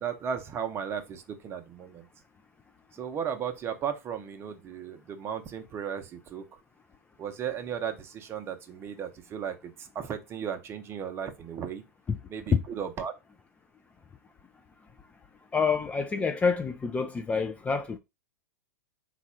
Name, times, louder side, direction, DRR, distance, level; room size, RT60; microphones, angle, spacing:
voice 1, 0.0-2.1 2.9-6.6 7.2-11.8 12.3-13.1, right 8 dB, 30° right, 0.7 m, -35 dB
voice 2, 15.5-18.0, left 5 dB, 15° left, 0.4 m, -27 dB
4.0 x 2.3 x 4.2 m
hypercardioid pair, 100°, 9 cm